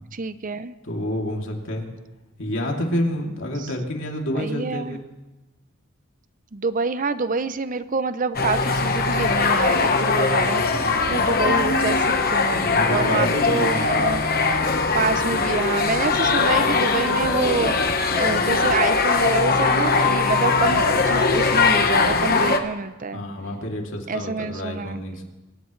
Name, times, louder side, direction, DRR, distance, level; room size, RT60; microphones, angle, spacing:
voice 1, 0.2-0.7 3.6-3.7 4.3-5.0 6.5-14.2 14.9-23.2 24.1-25.0, right 4 dB, 40° right, 12 dB, 0.6 m, -27 dB
voice 2, 0.8-1.9 2.4-5.0 11.5-11.8 12.6-13.9 23.1-25.3, left 1 dB, 60° left, 0 dB, 2.8 m, -28 dB
sound 1, 8.3-22.6, left 4 dB, 45° left, 1.3 m, -20 dB
25.0 x 17.5 x 3.2 m, 1.1 s
head